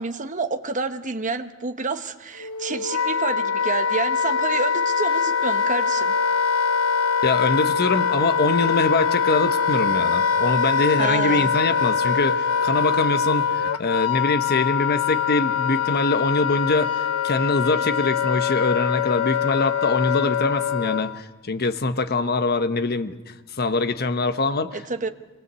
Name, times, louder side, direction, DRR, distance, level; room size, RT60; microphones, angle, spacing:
voice 1, 0.0-6.1 11.0-11.5 24.7-25.1, right 4 dB, 35° right, 8 dB, 1.0 m, -29 dB
Wind instrument woodwind instrument, 2.4-21.2, left 7 dB, 80° left, 0.9 m, -23 dB
voice 2, 7.2-24.8, left 3 dB, 45° left, 9 dB, 1.1 m, -23 dB
24.0 x 19.0 x 8.2 m, 1.2 s
head